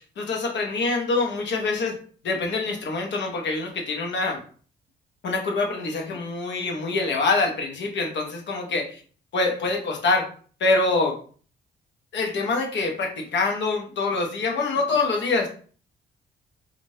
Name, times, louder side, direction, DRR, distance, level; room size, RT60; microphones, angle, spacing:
voice 1, 0.0-1.9 2.2-4.4 5.2-8.9 9.3-10.3 10.6-11.2 12.1-15.5, left 3 dB, 65° left, 2 dB, 1.0 m, -25 dB
3.7 x 2.5 x 2.6 m, 0.43 s
cardioid pair, 90°, 20 cm